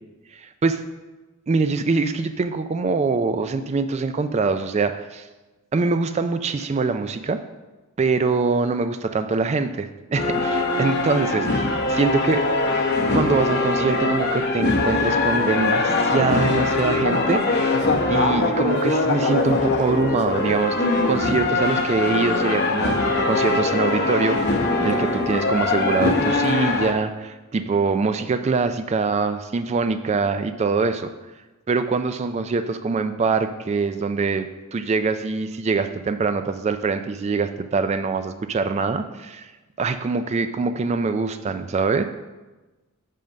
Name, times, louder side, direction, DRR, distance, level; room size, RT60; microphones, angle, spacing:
voice 1, 0.3-0.8 1.5-5.3 5.7-7.4 8.0-12.4 13.1-24.4 24.8-31.1 31.7-39.5 39.8-42.0, right 4 dB, 30° right, 9 dB, 0.3 m, -24 dB
sound 1, 10.2-26.9, left 2 dB, 50° left, 0.8 m, -22 dB
5.6 x 5.2 x 6.4 m, 1.1 s
head